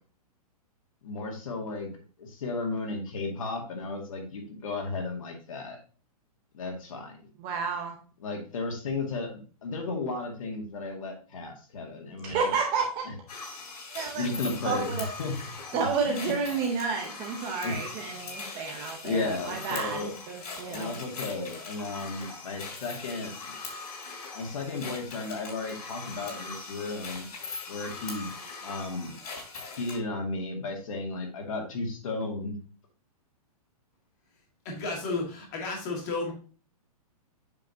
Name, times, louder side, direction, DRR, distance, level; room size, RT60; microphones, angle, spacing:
voice 1, 1.0-5.8 6.5-7.1 8.2-12.5 13.1-13.2 14.1-15.3 16.0-16.2 17.6-17.7 18.1-18.3 19.0-20.1 20.7-23.5 24.3-27.3 27.7-28.3 28.6-29.2 29.7-32.6, left 3 dB, 60° left, 1 dB, 2.2 m, -34 dB
voice 2, 7.4-7.9 12.2-13.0 13.9-15.1 15.7-21.0, right 5 dB, 15° right, 2 dB, 0.7 m, -31 dB
sound 1, 13.3-30.0, left 3 dB, 80° left, 3.1 m, -41 dB
voice 3, 34.7-36.3, left 3 dB, 25° left, 0 dB, 2.0 m, -32 dB
7.8 x 5.8 x 2.7 m, 0.38 s
hypercardioid pair, 175°, 20 cm